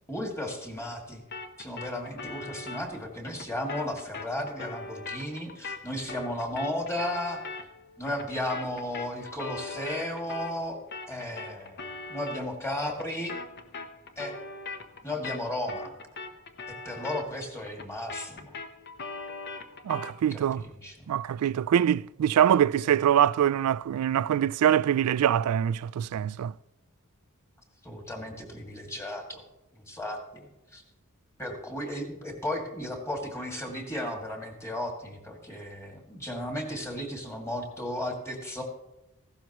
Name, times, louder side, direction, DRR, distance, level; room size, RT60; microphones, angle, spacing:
voice 1, 0.1-1.2 1.6-7.4 8.0-13.3 14.2-14.3 15.0-15.9 16.8-18.5 19.9-20.0 20.3-21.1 27.8-29.4 29.7-30.5 30.7-30.8 31.4-38.6, left 1 dB, 15° left, 2.2 m, -34 dB
sound 1, 1.3-10.6 10.9-20.2, left 3 dB, 50° left, 0.9 m, -41 dB
voice 2, 19.8-20.6 21.1-26.5, right 9 dB, 80° right, 0.3 m, -24 dB
15.5 x 12.0 x 3.0 m
head